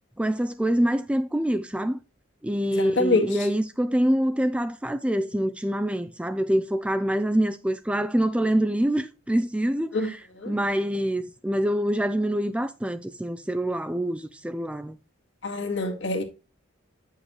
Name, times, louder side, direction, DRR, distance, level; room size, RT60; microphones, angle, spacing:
voice 1, 0.2-2.0 2.4-15.0, right 1 dB, 5° right, 0.4 m, -25 dB
voice 2, 2.7-3.3 9.9-10.5 15.4-16.2, left 2 dB, 65° left, 1.9 m, -26 dB
9.6 x 6.4 x 3.0 m
head